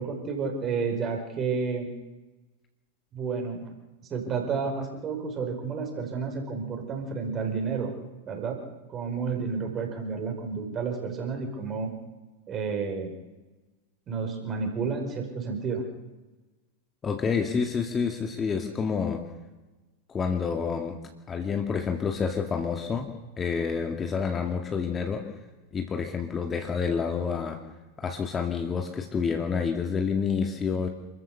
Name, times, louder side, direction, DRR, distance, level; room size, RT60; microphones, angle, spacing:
voice 1, 0.0-1.9 3.1-3.7 4.0-7.9 8.3-8.6 8.9-12.0 12.5-13.1 14.1-15.9, right 5 dB, 25° right, 3 dB, 5.2 m, -31 dB
voice 2, 17.0-19.2 20.1-21.0 21.3-25.3 25.7-27.6 28.0-30.9, left 6 dB, 20° left, 4 dB, 2.2 m, -28 dB
28.5 x 14.0 x 6.8 m, 1.1 s
figure-of-eight pair, 90°, 0 cm